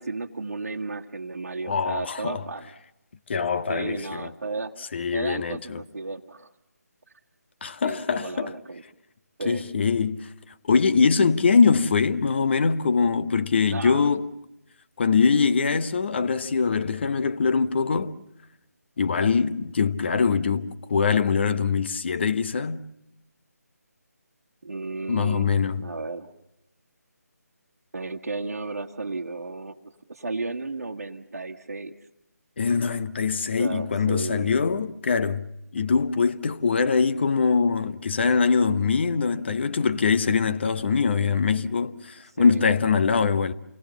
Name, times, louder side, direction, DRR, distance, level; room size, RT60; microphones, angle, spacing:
voice 1, 0.0-2.7 3.7-4.7 5.1-6.5 7.8-8.8 9.4-9.6 13.7-14.1 24.6-25.5 25.8-26.3 27.9-29.8 30.1-31.9 33.6-34.5 42.4-42.7, right 3 dB, 65° right, 1.4 m, -33 dB
voice 2, 1.6-2.4 3.3-4.3 4.9-5.8 7.6-8.6 9.4-10.3 10.6-14.3 15.0-18.1 19.0-22.8 25.1-25.9 32.6-35.5 35.7-43.5, left 5 dB, 40° left, 0.9 m, -23 dB
28.5 x 19.0 x 7.0 m
figure-of-eight pair, 155°, 9 cm